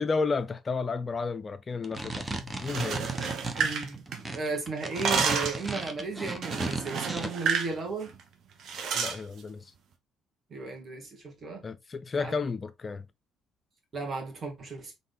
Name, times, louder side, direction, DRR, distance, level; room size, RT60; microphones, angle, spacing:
voice 1, 0.0-3.1 8.9-9.7 11.6-13.1, left 4 dB, 35° left, 0.4 m, -32 dB
sound 1, 1.7-7.3, right 2 dB, 20° right, 1.0 m, -35 dB
sound 2, 2.6-4.5 4.8-5.7 6.4-7.7 8.0-8.2 8.7-9.2, right 6 dB, 60° right, 1.0 m, -30 dB
voice 2, 3.6-4.0 4.3-8.1 10.5-11.6 12.2-12.4 13.9-14.9, right 3 dB, 40° right, 2.3 m, -35 dB
3.8 x 3.8 x 3.5 m
hypercardioid pair, 50°, 0 cm